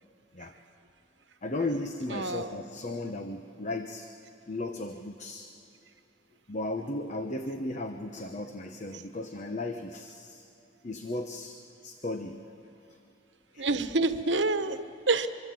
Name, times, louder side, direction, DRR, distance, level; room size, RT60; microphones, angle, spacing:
voice 1, 1.4-4.1 4.5-5.5 6.5-10.5 10.8-11.6 11.8-12.4 13.5-13.7, left 2 dB, 40° left, 6 dB, 1.0 m, -35 dB
voice 2, 2.1-2.6 8.9-9.0 13.6-15.3, right 3 dB, 85° right, 9 dB, 1.2 m, -28 dB
25.0 x 24.5 x 7.7 m, 2.7 s
head